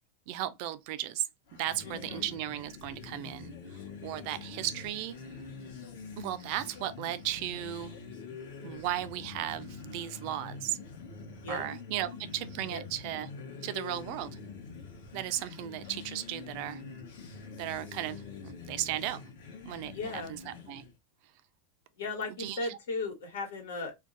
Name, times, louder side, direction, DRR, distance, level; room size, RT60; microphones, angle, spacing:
voice 1, 0.3-1.3 1.5-3.5 4.0-5.2 6.2-7.9 8.6-10.8 11.5-13.3 13.6-14.4 15.1-16.8 17.6-19.2 19.6-20.8 22.4-22.8, right 13 dB, 40° right, 0.3 m, -35 dB
sound 1, 1.5-21.0, left 5 dB, 60° left, 0.9 m, -45 dB
voice 2, 1.8-2.2 11.4-11.6 12.7-12.8 19.9-20.3 22.0-23.9, left 3 dB, 90° left, 1.3 m, -36 dB
2.5 x 2.2 x 3.8 m
supercardioid pair, 175°, 0 cm